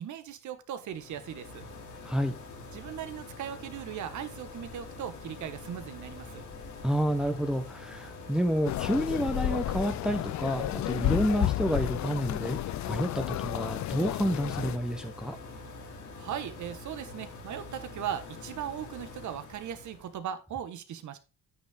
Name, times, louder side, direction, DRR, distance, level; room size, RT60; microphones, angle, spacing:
voice 1, 0.0-1.6 2.7-6.4 16.2-21.2, right 10 dB, 75° right, 1.4 m, -38 dB
sound 1, 0.8-20.2, left 3 dB, 85° left, 3.9 m, -45 dB
voice 2, 2.0-2.4 6.8-15.4, equal, ahead, 1.0 m, -29 dB
sound 2, 8.6-14.8, left 14 dB, 65° left, 0.6 m, -32 dB
9.7 x 6.7 x 3.6 m
cardioid pair, 90°, 30 cm